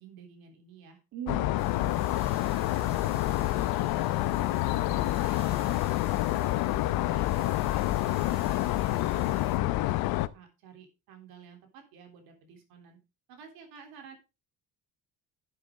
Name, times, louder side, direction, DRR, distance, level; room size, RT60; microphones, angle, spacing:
voice 1, 0.0-1.0 1.5-1.8 2.4-5.8 6.2-9.9 10.3-13.0 13.3-14.2, right 7 dB, 75° right, 4 dB, 3.5 m, -52 dB
voice 2, 1.1-2.3, right 9 dB, 50° right, 3 dB, 1.8 m, -41 dB
sound 1, 1.3-10.3, left 16 dB, 75° left, 0.8 m, -28 dB
sound 2, 1.6-9.6, right 1 dB, 15° right, 3.3 m, -52 dB
11.5 x 7.7 x 3.7 m, 0.27 s
cardioid pair, 165°, 36 cm